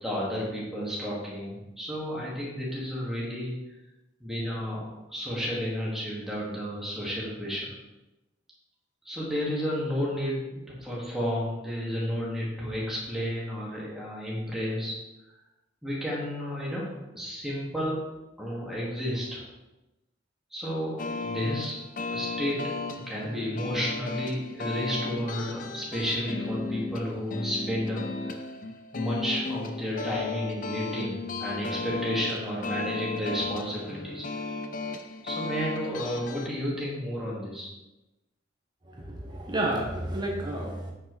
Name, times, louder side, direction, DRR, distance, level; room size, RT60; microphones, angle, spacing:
voice 1, 0.0-3.6 4.2-7.7 9.0-15.0 15.8-18.0 18.4-19.4 20.5-21.8 22.1-22.6 22.9-28.4 28.9-34.6 34.8-34.9 35.2-37.7, equal, ahead, -6 dB, 2.2 m, -32 dB
sound 1, 21.0-36.5, left 3 dB, 45° left, 0.6 m, -35 dB
voice 2, 38.9-40.9, right 1 dB, 20° right, -1 dB, 1.1 m, -31 dB
8.6 x 6.3 x 4.1 m, 1.0 s
head